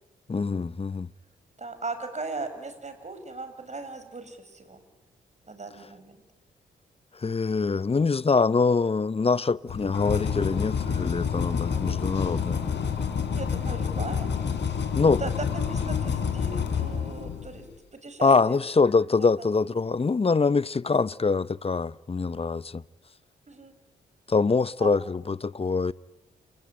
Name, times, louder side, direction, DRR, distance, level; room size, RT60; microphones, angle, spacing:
voice 1, 0.3-1.1 7.1-12.7 14.9-15.2 18.2-22.8 24.3-25.9, left 4 dB, 30° left, 0.9 m, -24 dB
voice 2, 1.6-4.8 5.4-6.2 13.3-14.3 15.0-18.6 19.2-19.5 23.5-23.7 24.8-24.9, right 3 dB, 35° right, 6.5 m, -38 dB
sound 1, 9.7-17.6, left 6 dB, 65° left, 4.0 m, -28 dB
29.0 x 18.5 x 10.0 m
hypercardioid pair, 45°, 20 cm